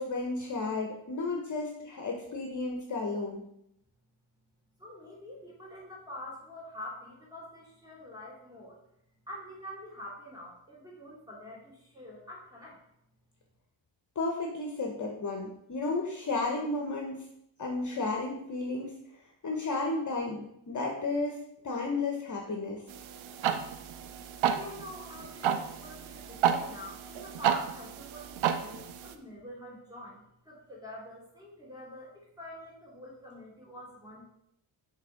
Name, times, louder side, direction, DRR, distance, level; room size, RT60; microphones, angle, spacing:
voice 1, 0.0-3.4 14.2-17.2 17.6-18.9 19.4-22.8, left 3 dB, 40° left, 1 dB, 0.9 m, -33 dB
voice 2, 4.8-8.8 9.3-12.8 24.5-34.2, left 1 dB, 10° right, -4 dB, 2.7 m, -46 dB
sound 1, 22.9-29.1, right 8 dB, 85° right, 0.6 m, -32 dB
6.5 x 3.5 x 5.0 m, 0.78 s
cardioid pair, 100°, 46 cm